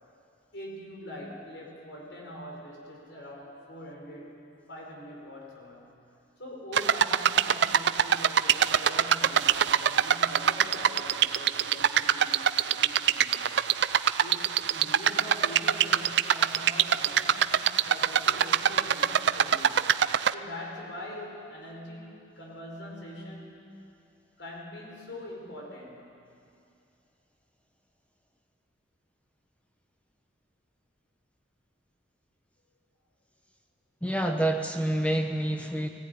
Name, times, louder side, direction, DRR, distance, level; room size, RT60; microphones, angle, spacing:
voice 1, 0.5-4.4 4.7-5.9 6.4-13.6 14.2-19.9 20.3-23.5 24.4-26.2, left 1 dB, 70° left, -1 dB, 4.9 m, -43 dB
sound 1, 6.7-20.3, right 8 dB, 65° right, 0.5 m, -24 dB
voice 2, 34.0-35.9, right 1 dB, 5° left, 4 dB, 1.0 m, -27 dB
19.0 x 17.0 x 9.6 m, 2.5 s
head